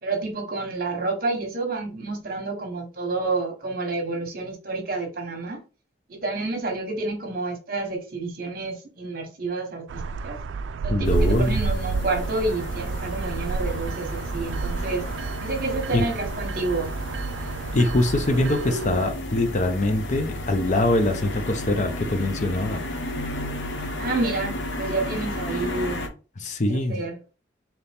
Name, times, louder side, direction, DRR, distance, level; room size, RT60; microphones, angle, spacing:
voice 1, 0.0-5.6 6.1-10.4 10.8-15.0 15.4-16.9 24.0-26.0 26.7-27.2, right 3 dB, 50° right, 1.2 m, -29 dB
sound 1, 9.9-19.1, right 4 dB, 80° right, 0.3 m, -30 dB
voice 2, 10.9-11.6 15.9-16.0 17.7-22.8 26.4-27.0, left 2 dB, 40° left, 0.6 m, -23 dB
sound 2, 11.0-26.1, left 1 dB, 85° left, 0.9 m, -33 dB
4.1 x 3.0 x 3.5 m
head